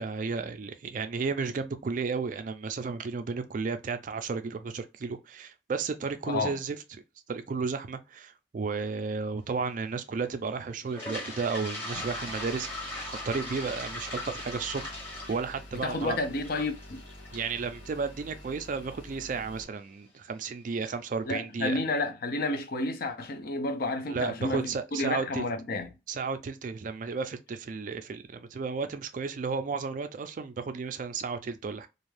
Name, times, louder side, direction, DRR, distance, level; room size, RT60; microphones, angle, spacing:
voice 1, 0.0-6.8 7.3-12.9 13.2-14.8 15.3-16.2 17.3-21.8 24.1-25.5 26.1-31.9, right 4 dB, 45° right, 0.3 m, -33 dB
voice 2, 6.3-6.6 15.8-17.0 21.3-25.9, left 2 dB, 50° left, 0.5 m, -31 dB
Toilet flush, 10.8-18.8, left 1 dB, 10° left, 0.9 m, -40 dB
sound 1, 11.9-19.6, left 1 dB, 90° left, 0.9 m, -48 dB
2.5 x 2.3 x 3.2 m
head